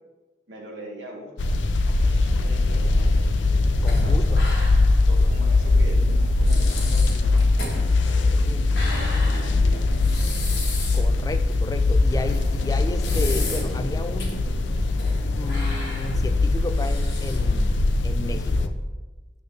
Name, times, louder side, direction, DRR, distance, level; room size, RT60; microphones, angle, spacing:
voice 1, 0.5-1.3 2.0-3.1 4.0-4.5 5.0-9.8, equal, 75° right, -2 dB, 2.0 m, -42 dB
sound 1, 1.4-18.7, left 2 dB, 75° left, 0.5 m, -21 dB
voice 2, 3.8-4.5 8.5-8.9 10.9-14.5 15.4-18.8, left 1 dB, 20° left, 9 dB, 0.3 m, -33 dB
sound 2, 3.9-5.0 5.3-5.4 6.1-6.2 6.4-11.1 11.5-11.6 12.3-13.8 14.2-14.3 14.8-15.2 15.5-17.6, left 2 dB, 55° left, 1.8 m, -35 dB
sound 3, 13.1-16.5, equal, 10° right, 1.5 m, -41 dB
9.0 x 6.5 x 3.3 m, 1.2 s
head